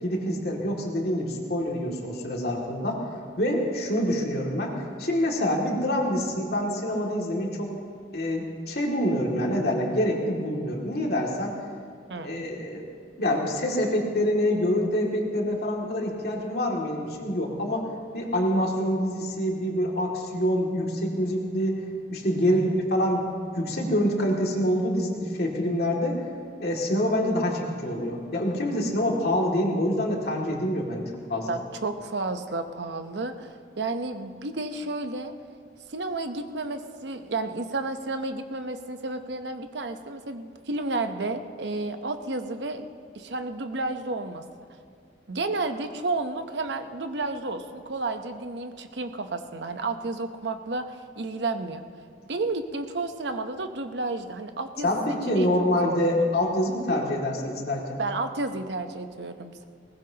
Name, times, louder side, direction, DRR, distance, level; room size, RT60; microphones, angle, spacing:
voice 1, 0.0-3.0 3.4-7.7 8.1-11.6 12.2-12.9 13.2-17.9 18.1-21.8 22.1-26.2 26.6-31.0 31.3-31.6 54.8-58.0, equal, 60° left, -1 dB, 2.3 m, -26 dB
voice 2, 12.1-12.4 22.5-22.8 31.5-35.3 35.9-42.9 43.1-44.4 45.3-51.8 52.3-56.3 58.0-59.6, right 3 dB, 70° right, 7 dB, 0.8 m, -32 dB
20.5 x 19.5 x 2.9 m, 2.1 s
head